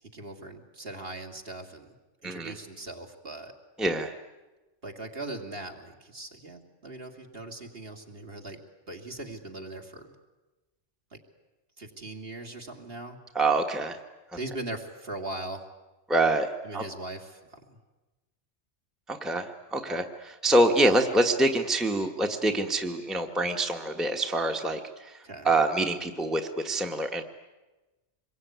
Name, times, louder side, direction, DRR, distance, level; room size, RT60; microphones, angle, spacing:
voice 1, 0.1-1.9 2.2-3.5 4.8-8.6 8.9-10.1 11.1-11.2 11.8-13.2 14.3-15.7 16.6-17.8 25.2-25.5, right 2 dB, 50° right, 3 dB, 2.9 m, -40 dB
voice 2, 3.8-4.1 13.3-14.0 16.1-16.5 16.7-16.8 19.1-25.1 25.4-27.2, right 1 dB, ahead, 3 dB, 1.4 m, -25 dB
26.5 x 22.5 x 9.5 m, 1.1 s
omnidirectional pair, 1.3 m